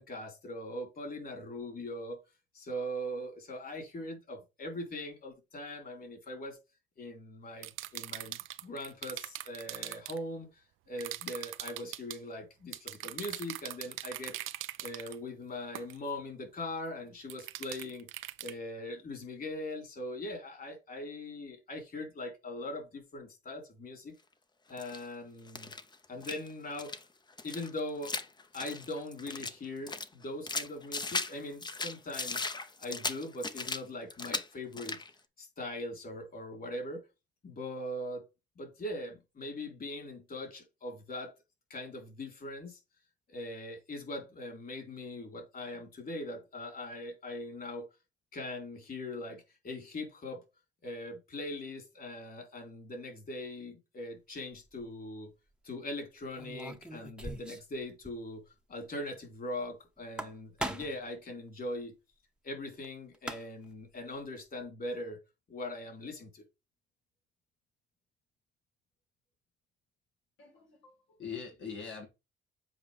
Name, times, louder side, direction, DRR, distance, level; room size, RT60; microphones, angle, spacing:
voice 1, 0.0-2.2 2.5-6.6 7.0-10.5 10.9-14.3 14.8-18.1 18.4-24.1 24.7-25.7 26.1-26.9 27.4-28.1 28.5-32.5 32.8-35.0 35.4-37.0 37.4-38.2 38.6-41.3 41.7-42.8 43.3-47.9 48.3-50.4 50.8-55.3 55.6-58.4 58.7-61.9 62.4-65.2 65.5-66.4, left 1 dB, 50° left, 3.6 m, -41 dB
sound 1, 7.6-10.2 11.0-12.2 12.7-15.2 15.7-16.0 17.3-18.5, right 15 dB, 85° right, 0.5 m, -41 dB
sound 2, 24.8-25.1 25.5-26.5 26.8-27.0 27.4-29.6 29.9-31.4 31.6-33.8 34.1-34.5 34.7-35.1, left 3 dB, 20° left, 0.7 m, -37 dB
sound 3, 54.5-54.8 56.3-57.8 58.0-58.1 58.4-58.5 60.0-61.1 62.8-62.9 63.1-63.7, right 1 dB, 5° right, 0.9 m, -40 dB
voice 2, 70.4-72.1, left 6 dB, 85° left, 2.2 m, -43 dB
7.9 x 4.6 x 3.3 m
cardioid pair, 90°, 20 cm